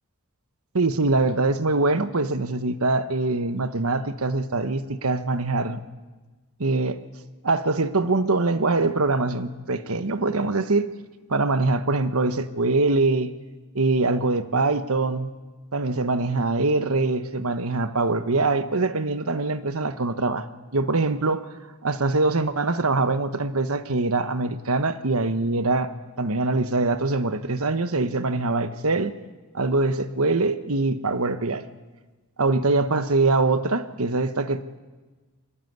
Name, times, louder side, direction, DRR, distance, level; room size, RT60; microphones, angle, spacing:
voice 1, 0.7-5.8 6.6-7.0 7.4-10.9 11.3-13.3 13.7-15.3 15.7-20.5 20.7-21.5 21.8-25.9 26.2-29.1 29.5-31.6 32.4-34.6, right 3 dB, 70° right, 1.2 m, -23 dB
24.0 x 20.0 x 9.5 m
head